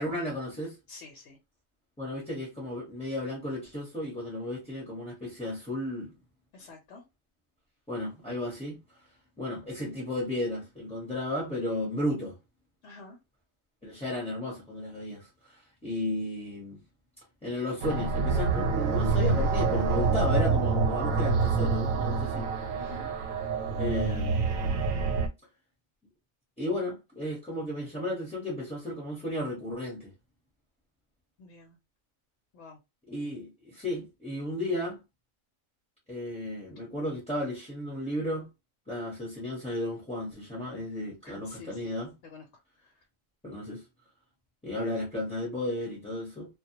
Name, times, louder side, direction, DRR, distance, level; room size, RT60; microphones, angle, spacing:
voice 1, 0.0-0.8 2.0-6.1 7.9-8.8 9.4-12.4 13.8-16.8 17.4-22.5 23.7-24.6 26.6-30.1 33.1-35.0 36.1-38.5 38.9-42.1 43.4-43.8 44.6-46.5, left 1 dB, 5° left, 0.7 m, -34 dB
voice 2, 0.9-1.4 6.5-7.0 12.8-13.2 22.8-23.1 31.4-31.8 32.5-32.8 41.2-41.8 42.2-42.4 42.8-42.9, left 3 dB, 65° left, 0.9 m, -48 dB
sound 1, 17.8-25.3, right 4 dB, 85° right, 1.0 m, -27 dB
2.2 x 2.1 x 2.8 m
omnidirectional pair, 1.4 m